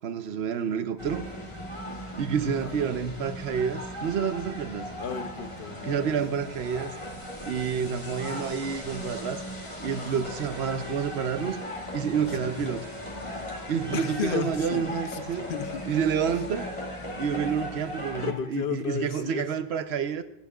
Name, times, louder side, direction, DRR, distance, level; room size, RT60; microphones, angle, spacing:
voice 1, 0.0-1.2 2.2-4.9 5.8-6.9 7.5-9.4 9.8-11.6 11.9-12.8 13.7-15.4 15.9-16.6 17.2-20.2, right 7 dB, 85° right, 1.0 m, -29 dB
sound 1, 1.0-18.3, left 1 dB, 30° left, 2.3 m, -38 dB
voice 2, 2.6-3.0 5.0-6.2 8.3-8.4 10.0-10.2 12.4-12.5 13.5-13.6 13.9-14.8 15.1-15.2 15.5-15.8 18.2-19.5, left 7 dB, 60° left, 0.9 m, -34 dB
25.5 x 10.0 x 2.4 m
omnidirectional pair, 1.1 m